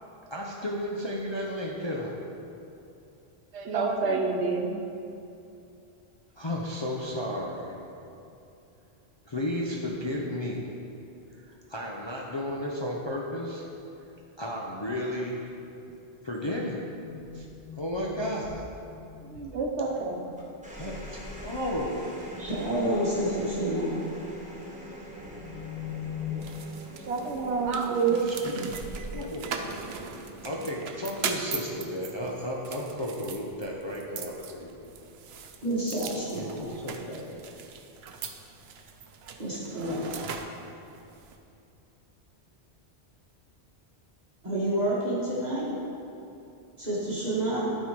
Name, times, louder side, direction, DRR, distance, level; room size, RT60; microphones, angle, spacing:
voice 1, 0.3-2.2 6.4-7.8 9.3-10.6 11.5-13.6 14.4-15.4 16.2-16.8 17.3-17.5 17.8-18.6 20.8-22.2 28.1-28.5 29.1-29.8 30.4-34.8 36.6-37.4, left 1 dB, 30° left, -3 dB, 0.7 m, -33 dB
voice 2, 3.5-4.7 19.2-20.3 27.1-28.2, right 4 dB, 85° right, 2 dB, 1.2 m, -28 dB
sound 1, 17.0-20.5 21.0-21.7 22.0-22.9 23.3-23.6 25.0-26.4, left 9 dB, 65° left, 1.6 m, -42 dB
sound 2, 20.4-33.0 34.2-34.6, right 1 dB, 5° right, 1.4 m, -45 dB
voice 3, 22.4-24.0 35.6-36.6 39.4-40.4 44.4-45.7 46.8-47.7, right 1 dB, 40° right, -8 dB, 1.6 m, -29 dB
sound 3, 26.4-41.4, right 6 dB, 70° right, 0.9 m, -40 dB
12.0 x 4.5 x 4.6 m, 2.7 s
omnidirectional pair, 1.1 m